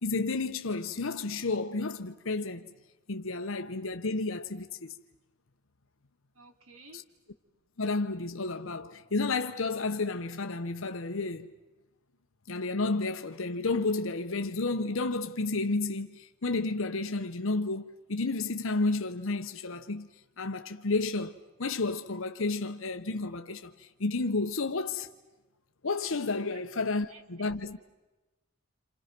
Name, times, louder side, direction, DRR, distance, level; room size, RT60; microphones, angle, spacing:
voice 1, 0.0-2.7 3.1-4.9 6.9-7.0 7.8-11.5 12.5-20.1 20.4-25.1 25.8-27.8, left 3 dB, 70° left, 1.0 m, -31 dB
voice 2, 6.3-7.0 26.5-26.6 27.1-27.5, right 3 dB, 85° right, 2.8 m, -53 dB
28.5 x 28.5 x 6.0 m
head